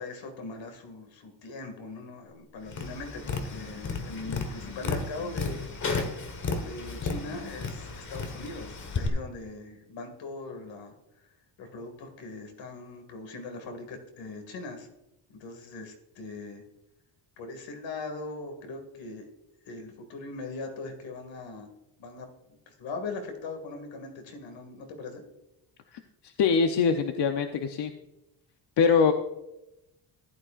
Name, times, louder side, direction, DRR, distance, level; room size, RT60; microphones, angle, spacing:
voice 1, 0.0-5.7 6.5-11.3 11.6-14.9 15.3-16.6 17.4-19.3 19.7-21.7 22.0-25.2, left 3 dB, 85° left, 5 dB, 2.2 m, -40 dB
Tap, 2.7-9.1, left 4 dB, 40° left, 1.4 m, -33 dB
voice 2, 25.9-27.9 28.8-29.1, left 6 dB, 65° left, 6 dB, 0.8 m, -24 dB
15.0 x 11.5 x 2.5 m, 0.93 s
cardioid pair, 160°, 44 cm